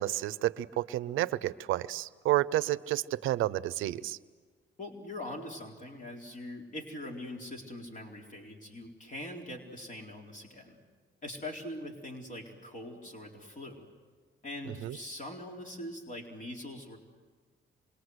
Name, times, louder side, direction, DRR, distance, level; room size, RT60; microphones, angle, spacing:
voice 1, 0.0-4.2 14.8-15.0, right 15 dB, 90° right, 17 dB, 0.7 m, -30 dB
voice 2, 4.8-10.8 11.2-13.9 14.4-17.0, left 1 dB, 40° left, 0 dB, 4.2 m, -42 dB
27.5 x 23.0 x 8.0 m, 1.5 s
cardioid pair, 90°, 20 cm